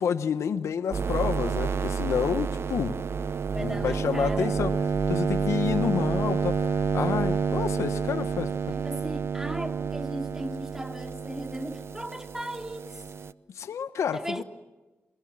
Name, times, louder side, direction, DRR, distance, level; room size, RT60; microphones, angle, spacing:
voice 1, 0.0-3.0 3.6-4.7 5.1-8.5 13.6-14.4, left 7 dB, 85° left, 1.0 m, -29 dB
sound 1, 0.9-13.3, right 6 dB, 60° right, 0.9 m, -29 dB
voice 2, 3.5-4.6 8.7-13.0 14.1-14.4, right 1 dB, 10° right, 3.0 m, -37 dB
28.0 x 23.5 x 7.5 m
cardioid pair, 55°, 5 cm